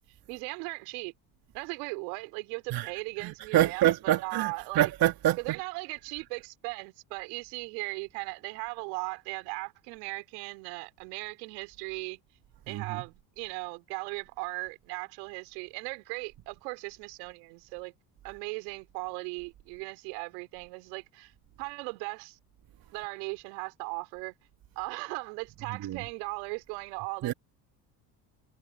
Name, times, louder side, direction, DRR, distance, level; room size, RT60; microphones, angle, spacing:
voice 1, 0.3-1.1 1.5-4.9 5.4-12.2 12.7-17.9 18.2-21.3 21.6-22.4 22.9-24.3 24.7-27.3, right 32 dB, 75° right, 3.2 m, -38 dB
voice 2, 3.2-5.6 12.7-13.0 25.8-26.0 27.2-27.3, right 14 dB, 45° right, 1.4 m, -27 dB
hypercardioid pair, 75°, 50 cm